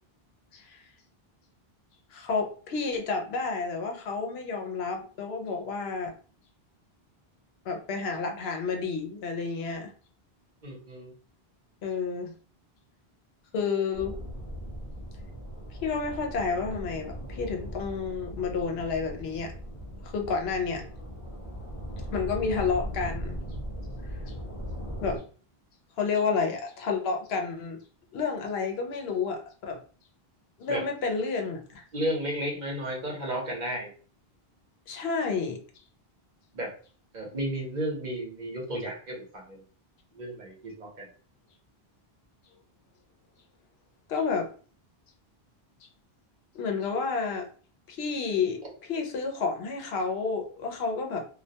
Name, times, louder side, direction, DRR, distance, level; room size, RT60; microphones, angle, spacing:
voice 1, 0.5-0.8 2.1-6.1 7.7-9.9 11.8-12.3 13.5-14.2 15.8-19.5 20.0-20.8 22.1-23.4 24.2-24.3 25.0-25.2 26.0-27.8 28.1-29.8 30.6-31.8 34.9-35.6 44.1-44.5 46.5-47.5 47.9-48.6 48.9-51.2, left 5 dB, 80° left, 3 dB, 0.8 m, -30 dB
voice 2, 10.6-11.1 20.7-20.8 30.7-30.8 31.9-33.9 36.5-36.7 37.1-39.6 40.1-41.1, right 1 dB, 50° right, -2 dB, 0.8 m, -33 dB
sound 1, 13.9-25.2, equal, 40° left, 0.7 m, -38 dB
2.3 x 2.1 x 2.7 m, 0.40 s
omnidirectional pair, 1.0 m